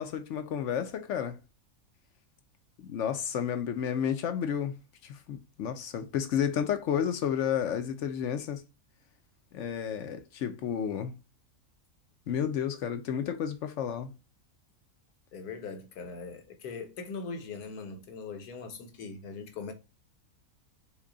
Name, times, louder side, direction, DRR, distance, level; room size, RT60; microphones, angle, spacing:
voice 1, 0.0-1.4 2.8-4.7 5.0-8.6 9.5-11.1 12.3-14.1, left 8 dB, 65° left, 0.8 m, -31 dB
voice 2, 15.3-19.7, left 4 dB, 80° left, 1.4 m, -40 dB
5.9 x 2.2 x 3.8 m
omnidirectional pair, 1.6 m